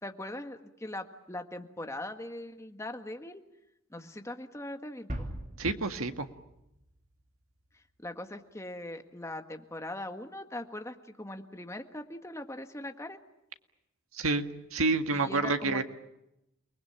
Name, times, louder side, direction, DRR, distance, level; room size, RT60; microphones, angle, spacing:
voice 1, 0.0-3.4 3.9-5.3 7.7-13.2 15.1-15.8, left 1 dB, 15° left, 6 dB, 1.6 m, -41 dB
sound 1, 5.1-7.8, equal, 35° right, 2.7 m, -42 dB
voice 2, 5.6-6.3 14.1-14.4 14.7-15.8, right 3 dB, 85° right, 7 dB, 1.9 m, -28 dB
30.0 x 20.5 x 8.7 m, 0.88 s
head